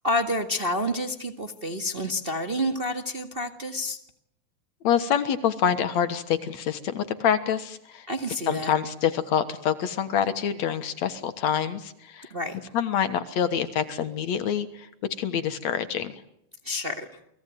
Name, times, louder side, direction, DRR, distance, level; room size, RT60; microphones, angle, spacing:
voice 1, 0.0-4.0 8.1-8.7 12.3-12.6 16.6-17.1, left 1 dB, 25° right, 5 dB, 1.5 m, -29 dB
voice 2, 4.8-8.1 8.5-12.3 12.7-14.9 15.2-16.1, left 8 dB, 65° left, 11 dB, 2.5 m, -26 dB
29.5 x 20.0 x 9.3 m, 0.78 s
omnidirectional pair, 3.5 m